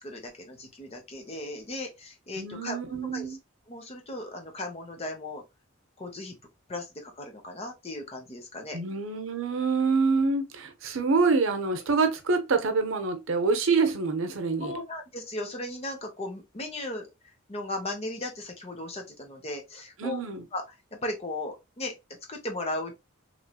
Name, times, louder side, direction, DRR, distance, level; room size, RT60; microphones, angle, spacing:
voice 1, 0.0-2.8 3.1-3.4 3.7-5.4 6.0-6.4 6.7-8.8 14.6-17.1 17.5-20.2 20.5-20.6 20.9-21.9 22.3-22.9, left 2 dB, 30° left, 0.7 m, -36 dB
voice 2, 2.4-3.4 8.7-14.8 20.0-20.4, right 4 dB, 65° right, 0.6 m, -26 dB
3.1 x 2.7 x 2.3 m
head